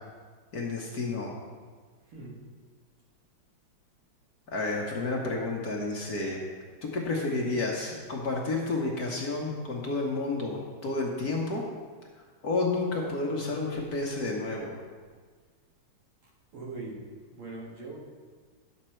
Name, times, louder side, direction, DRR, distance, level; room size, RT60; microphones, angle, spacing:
voice 1, 0.5-1.4 4.5-6.4 6.8-11.7 12.1-14.8, left 3 dB, 55° left, -1 dB, 1.3 m, -31 dB
voice 2, 2.1-2.4 13.7-13.9 16.5-17.0 17.3-18.0, right 3 dB, 80° right, -3 dB, 2.5 m, -41 dB
10.5 x 7.2 x 4.4 m, 1.5 s
omnidirectional pair, 2.4 m